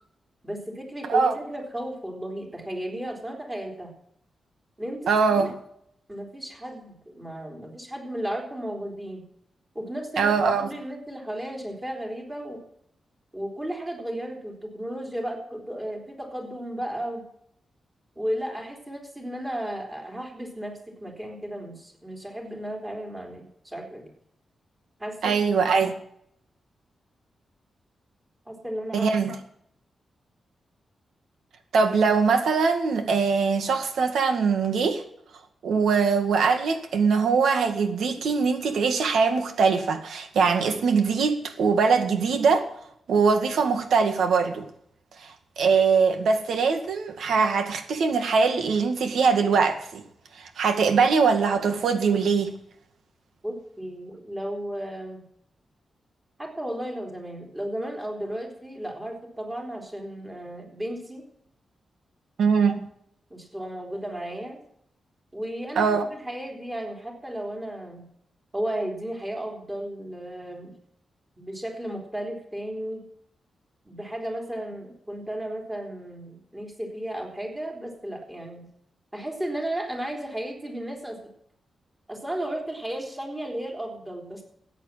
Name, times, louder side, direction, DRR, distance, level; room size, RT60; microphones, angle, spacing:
voice 1, 0.4-3.9 4.8-5.5 6.1-9.2 9.7-12.6 13.3-17.3 18.2-24.1 25.0-25.4 28.5-29.1 53.4-55.2 56.4-61.2 63.3-64.6 65.3-68.1 68.5-70.8 71.4-73.1 73.9-78.7 79.1-81.2 82.1-84.4, right 1 dB, 15° right, 3.7 m, -34 dB
voice 2, 5.1-5.5 10.2-10.7 25.2-25.9 28.9-29.4 31.7-35.0 35.6-42.7 43.1-44.7 45.2-45.3 45.6-50.0 50.4-52.6 62.4-62.9 65.8-66.0, right 5 dB, 85° right, 2.0 m, -22 dB
14.0 x 9.2 x 7.3 m
wide cardioid pair, 165°, 0 cm